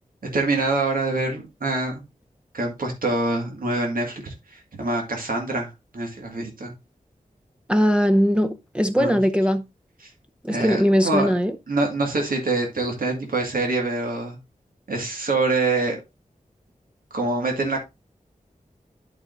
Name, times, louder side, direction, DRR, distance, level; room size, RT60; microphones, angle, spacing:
voice 1, 0.3-2.0 2.5-6.7 9.0-9.2 10.5-11.4 11.7-14.4 14.9-16.0 17.1-17.8, right 2 dB, 90° right, 1.9 m, -25 dB
voice 2, 7.7-9.6 10.4-11.5, equal, 5° right, 0.6 m, -20 dB
11.0 x 4.9 x 2.6 m
wide cardioid pair, 70°, 14 cm